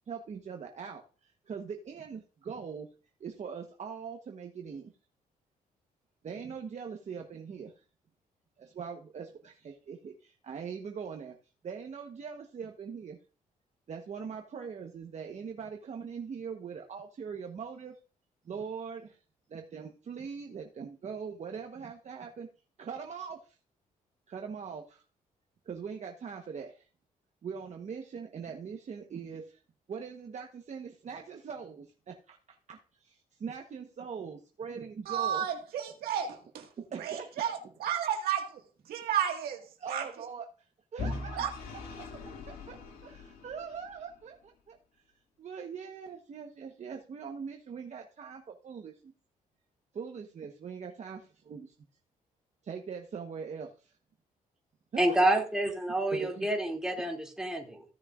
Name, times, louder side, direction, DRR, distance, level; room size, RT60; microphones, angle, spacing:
voice 1, 0.1-2.9 3.2-4.9 6.2-7.7 8.6-11.4 11.6-13.2 13.9-17.9 18.4-19.2 19.5-22.5 22.8-23.6 24.3-25.0 25.6-26.9 27.4-29.6 29.9-35.5 36.8-37.5 39.8-40.5 40.9-41.4 42.7-42.8 43.0-44.8 45.4-49.1 49.9-51.7 52.6-53.9 54.9-55.2 56.1-56.5, right 6 dB, 50° right, 1.1 m, -41 dB
voice 2, 35.1-36.7 37.0-38.6 38.9-40.1 41.4-41.5, right 9 dB, 85° right, 1.8 m, -32 dB
Vehicle / Engine, 41.0-44.0, left 3 dB, 85° left, 2.1 m, -40 dB
voice 3, 55.0-57.8, right 1 dB, 5° right, 2.6 m, -28 dB
16.0 x 6.4 x 2.5 m
cardioid pair, 85°, 15 cm